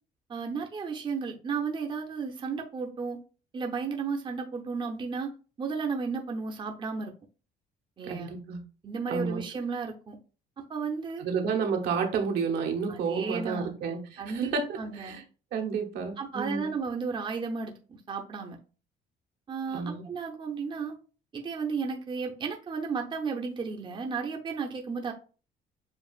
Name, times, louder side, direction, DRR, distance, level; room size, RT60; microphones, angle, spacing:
voice 1, 0.3-3.2 3.5-5.3 5.6-7.1 8.0-8.3 8.8-10.2 10.6-11.2 12.9-13.7 14.2-15.2 16.2-17.7 18.1-18.6 19.5-21.0 21.3-25.1, right 5 dB, 30° right, 2 dB, 0.7 m, -33 dB
voice 2, 8.0-8.6 9.1-9.4 11.2-15.2 15.5-16.7 19.7-20.0, right 5 dB, 75° right, 3 dB, 1.0 m, -31 dB
7.1 x 2.4 x 2.4 m, 0.36 s
cardioid pair, 110°, 17 cm